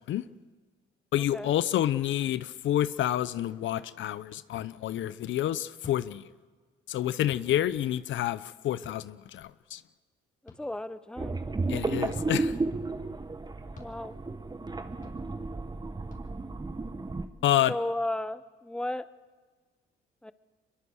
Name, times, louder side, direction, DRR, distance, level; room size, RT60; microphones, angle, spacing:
voice 1, 1.1-6.2 6.9-9.8 11.7-12.5 17.4-17.7, left 12 dB, 65° left, 0.8 m, -28 dB
sound 1, 4.5-4.7 5.8-6.0 7.3-7.5 8.8-9.0 10.5-10.6 12.0-12.2 13.7-13.9 15.0-15.2 16.1-16.2, left 4 dB, 40° left, 4.9 m, -48 dB
voice 2, 10.4-11.4 13.8-14.2 17.7-19.1 20.2-20.3, left 1 dB, 5° left, 0.9 m, -34 dB
sound 2, 11.2-17.3, right 3 dB, 20° right, 1.4 m, -33 dB
24.0 x 21.5 x 6.4 m
supercardioid pair, 75°, 21 cm